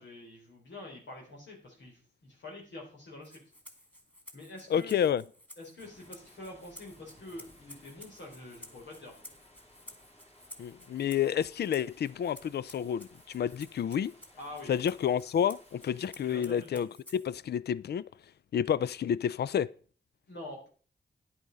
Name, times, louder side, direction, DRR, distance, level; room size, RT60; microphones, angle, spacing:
voice 1, 0.0-3.4 4.3-4.9 5.6-9.2 14.4-14.7 16.2-16.8 20.3-20.7, left 2 dB, 85° left, 4.4 m, -46 dB
Rattle (instrument), 3.2-17.4, equal, 10° left, 2.6 m, -54 dB
voice 2, 4.7-5.2 10.6-14.1 14.7-16.9 17.1-18.0 18.5-19.7, left 9 dB, 65° left, 0.4 m, -29 dB
sound 1, 5.8-16.5, left 1 dB, 35° left, 3.6 m, -60 dB
10.5 x 8.4 x 5.4 m
cardioid pair, 60°, 18 cm